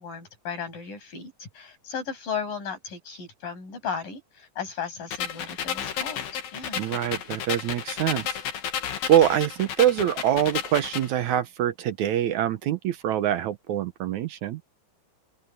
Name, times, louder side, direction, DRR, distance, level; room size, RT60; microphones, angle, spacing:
voice 1, 0.0-6.2 6.5-6.8, left 6 dB, 70° left, 8.5 m, -35 dB
sound 1, 5.1-11.1, left 8 dB, 85° left, 3.9 m, -32 dB
voice 2, 6.7-8.4 9.1-14.6, right 11 dB, 70° right, 2.0 m, -24 dB
open air
omnidirectional pair, 4.0 m